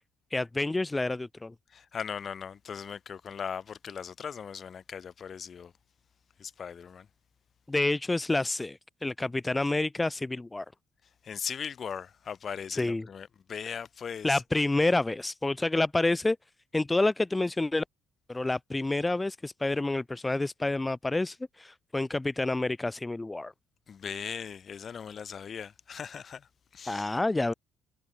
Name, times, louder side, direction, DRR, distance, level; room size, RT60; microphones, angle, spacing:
voice 1, 0.3-1.5 7.7-10.6 12.7-13.1 14.2-16.4 16.7-17.8 18.3-23.5 26.8-27.5, left 2 dB, 15° left, 1.6 m, -28 dB
voice 2, 1.7-5.7 6.4-7.1 11.2-14.4 23.9-27.1, left 7 dB, 45° left, 4.2 m, -39 dB
hypercardioid pair, 50°, 0 cm